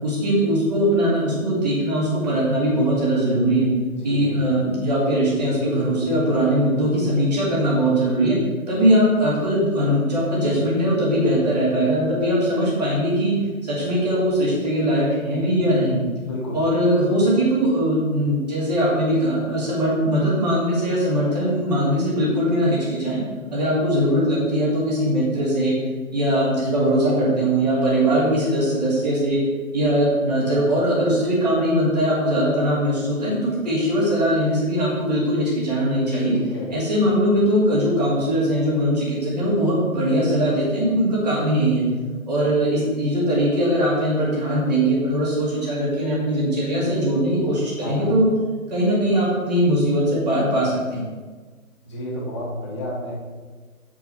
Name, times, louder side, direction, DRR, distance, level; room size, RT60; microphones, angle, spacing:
voice 1, 0.0-3.7 4.0-8.4 8.7-13.3 13.6-16.0 16.5-23.2 23.5-25.8 26.1-29.4 29.7-36.4 36.7-41.8 42.3-48.3 48.7-51.0, equal, 30° right, -6 dB, 2.5 m, -21 dB
voice 2, 3.9-4.5 16.2-16.6 36.3-36.7 47.8-48.1 51.8-53.2, equal, 20° left, -5 dB, 1.6 m, -31 dB
7.9 x 4.8 x 6.0 m, 1.4 s
figure-of-eight pair, 155°, 43 cm